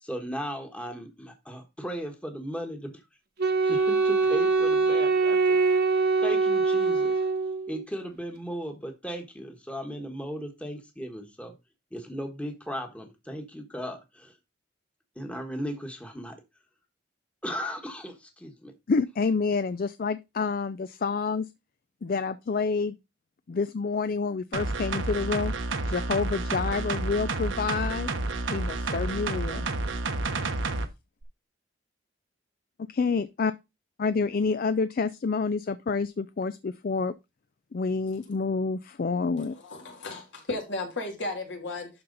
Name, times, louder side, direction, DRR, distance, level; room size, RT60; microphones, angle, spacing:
voice 1, 0.0-3.0 3.4-5.6 6.0-7.1 7.7-11.5 11.9-14.3 15.1-16.4 17.4-18.7, equal, 5° left, 1.3 m, -37 dB
Wind instrument woodwind instrument, 3.4-7.8, right 4 dB, 55° right, 1.1 m, -23 dB
voice 2, 18.9-21.5 22.0-23.0 23.5-25.5 25.9-28.1 28.5-29.7 32.9-33.5 34.0-37.1 37.7-39.5, left 4 dB, 50° left, 0.4 m, -28 dB
sound 1, 24.5-30.9 31.2-31.3, right 2 dB, 80° right, 1.1 m, -30 dB
voice 3, 39.4-41.9, left 2 dB, 70° left, 2.8 m, -34 dB
12.0 x 4.3 x 4.0 m
head